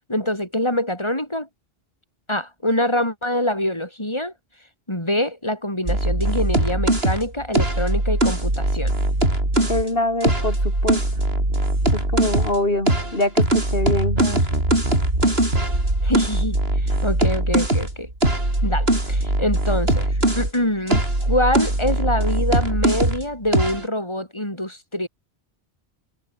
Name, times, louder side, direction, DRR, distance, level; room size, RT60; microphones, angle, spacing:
voice 1, 0.1-1.5 2.3-4.3 4.9-8.9 14.2-14.4 15.2-15.3 16.0-18.1 18.6-25.1, left 1 dB, 25° left, 7.0 m, -25 dB
sound 1, 5.9-9.8 10.2-12.6 12.9-20.5 20.9-23.2 23.5-23.8, right 1 dB, 70° right, 6.3 m, -21 dB
voice 2, 9.7-11.0 11.9-14.2, left 1 dB, 65° left, 5.5 m, -24 dB
omnidirectional pair, 1.1 m